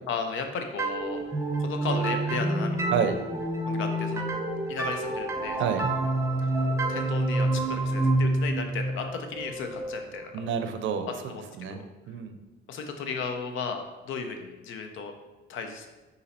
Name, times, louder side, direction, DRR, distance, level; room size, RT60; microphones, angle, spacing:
voice 1, 0.1-1.2 1.6-2.9 3.7-4.3 4.7-5.9 6.9-10.2 11.3-11.8 12.7-15.1 15.5-15.9, left 5 dB, 80° left, 5 dB, 0.6 m, -35 dB
sound 1, 0.8-10.3, right 2 dB, 15° right, 0.7 m, -28 dB
voice 2, 10.3-11.1 11.6-12.4, right 7 dB, 75° right, 8 dB, 0.5 m, -29 dB
4.1 x 2.7 x 4.1 m, 1.1 s
cardioid pair, 90°, 20 cm